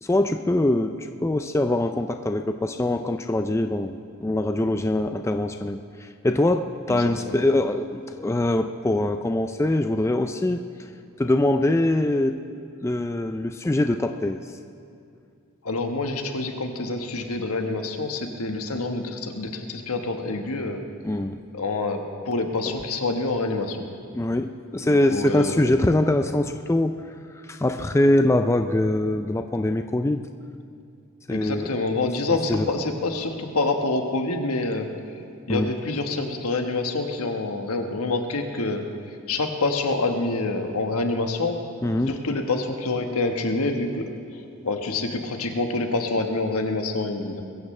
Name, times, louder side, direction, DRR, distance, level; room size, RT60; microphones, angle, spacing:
voice 1, 0.0-10.9 11.2-12.4 12.8-14.4 21.0-21.4 24.1-27.0 27.5-30.3 31.3-31.7 32.3-32.6 35.5-35.7 41.8-42.2, left 1 dB, 10° left, 7 dB, 0.3 m, -23 dB
voice 2, 6.9-7.5 15.6-20.8 21.5-23.8 24.8-25.9 31.3-35.2 35.5-41.6 42.1-47.4, left 2 dB, 80° left, 4 dB, 1.3 m, -27 dB
22.0 x 15.0 x 3.3 m, 2.4 s
head